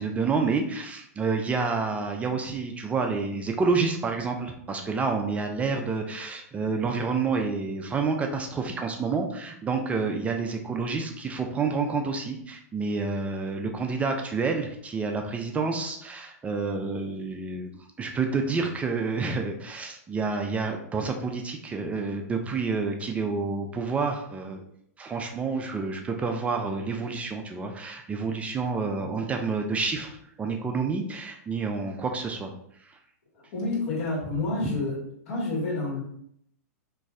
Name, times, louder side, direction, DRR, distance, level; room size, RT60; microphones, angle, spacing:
voice 1, 0.0-17.7 18.0-24.6 25.0-32.5, right 4 dB, 15° right, 4 dB, 0.3 m, -29 dB
voice 2, 33.3-35.0 35.3-36.0, left 2 dB, 60° left, -4 dB, 1.4 m, -29 dB
3.0 x 2.5 x 2.4 m, 0.69 s
hypercardioid pair, 115°, 9 cm